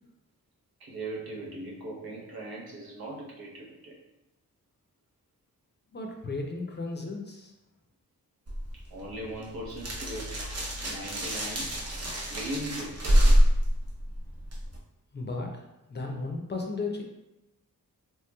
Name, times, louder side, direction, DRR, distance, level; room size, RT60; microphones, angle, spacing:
voice 1, 0.8-3.9 8.7-10.5 10.8-11.7 12.3-13.0, right 1 dB, 85° right, -3 dB, 0.8 m, -39 dB
voice 2, 5.9-7.5 15.1-15.6 15.9-17.0, left 3 dB, 30° left, 1 dB, 0.4 m, -34 dB
sound 1, 8.5-14.8, equal, 45° right, 0.7 m, -26 dB
3.1 x 2.9 x 2.2 m, 0.94 s
wide cardioid pair, 90°, 36 cm